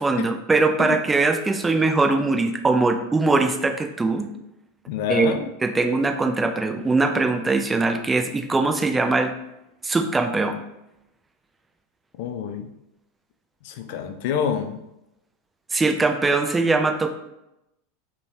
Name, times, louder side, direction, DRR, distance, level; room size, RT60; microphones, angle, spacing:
voice 1, 0.0-4.3 5.1-9.3 9.8-10.6 15.7-17.1, right 3 dB, 15° right, 4 dB, 0.3 m, -21 dB
voice 2, 4.9-5.5 12.2-12.7 13.6-14.8, left 8 dB, 60° left, 7 dB, 0.3 m, -27 dB
2.6 x 2.2 x 3.1 m, 0.87 s
hypercardioid pair, 90°, 0 cm